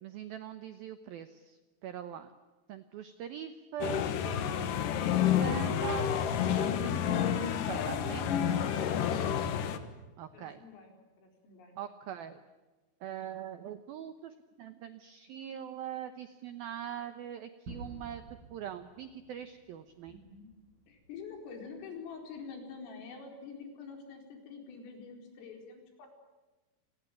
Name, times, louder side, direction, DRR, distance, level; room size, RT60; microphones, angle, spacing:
voice 1, 0.0-2.3 2.7-4.3 5.0-8.3 10.2-10.6 11.8-12.4 13.0-18.2 18.5-20.2, right 10 dB, 85° right, 10 dB, 2.1 m, -42 dB
sound 1, 3.8-9.8, left 9 dB, 65° left, 2.3 m, -29 dB
voice 2, 10.3-11.8 20.1-20.5 20.9-26.1, left 5 dB, 85° left, 3 dB, 7.1 m, -47 dB
Gunshot gunfire / Fireworks / Boom, 17.7-22.5, right 2 dB, 45° right, 7.9 m, -52 dB
29.5 x 20.0 x 9.2 m, 1.2 s
omnidirectional pair, 5.7 m